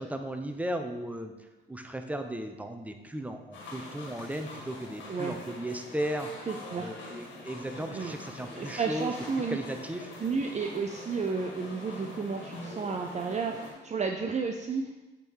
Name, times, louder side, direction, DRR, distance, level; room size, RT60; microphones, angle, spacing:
voice 1, 0.0-1.3 1.7-6.5 6.8-9.1 9.5-10.1, right 1 dB, 5° right, 5 dB, 0.8 m, -36 dB
sound 1, 3.5-13.7, left 2 dB, 75° left, 2.0 m, -44 dB
voice 2, 6.5-6.9 7.9-8.1 8.5-9.6 10.2-14.8, right 5 dB, 35° right, 3 dB, 0.6 m, -32 dB
8.2 x 3.8 x 4.7 m, 1.1 s
cardioid pair, 70°, 20 cm